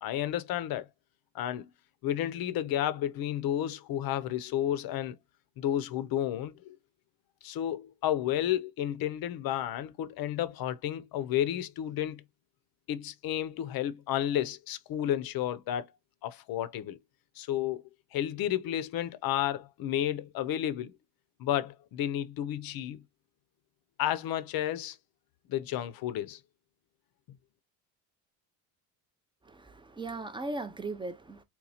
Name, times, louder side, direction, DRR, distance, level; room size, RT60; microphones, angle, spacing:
voice 1, 0.0-0.9 1.3-1.7 2.0-5.2 5.6-6.8 7.4-12.2 12.9-15.9 16.2-17.0 17.4-17.8 18.1-20.9 21.4-23.0 24.0-25.0 25.5-26.4, left 11 dB, 50° left, 0.6 m, -31 dB
voice 2, 29.4-31.4, right 2 dB, 10° right, 0.3 m, -38 dB
2.8 x 2.3 x 4.0 m
supercardioid pair, 75°, 47 cm